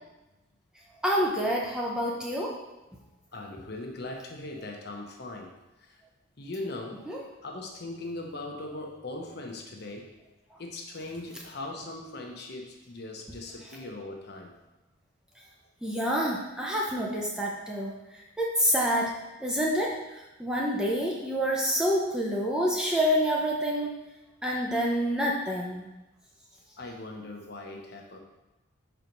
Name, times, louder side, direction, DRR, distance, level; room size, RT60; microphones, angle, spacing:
voice 1, 1.0-2.6 7.1-7.2 15.8-19.1 19.4-23.9 24.4-25.8, equal, 5° right, -3 dB, 0.6 m, -27 dB
voice 2, 3.3-5.5 5.8-6.0 6.4-7.1 7.4-10.1 10.6-14.5 26.8-28.2, left 2 dB, 50° left, 1 dB, 0.8 m, -39 dB
4.5 x 4.0 x 5.2 m, 1.0 s
head